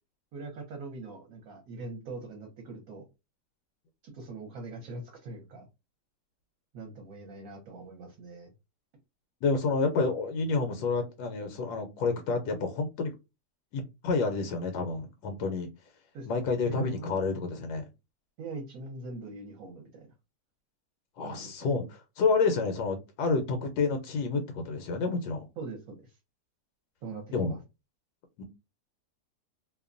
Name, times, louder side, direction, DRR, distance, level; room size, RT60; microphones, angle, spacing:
voice 1, 0.3-3.1 4.0-5.7 6.7-8.5 16.1-17.1 18.4-20.1 21.2-21.7 25.6-26.2 27.0-27.6, right 3 dB, 65° right, 1 dB, 1.1 m, -42 dB
voice 2, 9.4-13.1 13.7-15.7 16.3-17.9 21.2-25.5 27.3-27.5 28.4-28.5, left 4 dB, 80° left, 6 dB, 1.1 m, -29 dB
2.8 x 2.1 x 2.4 m, 0.25 s
omnidirectional pair, 1.8 m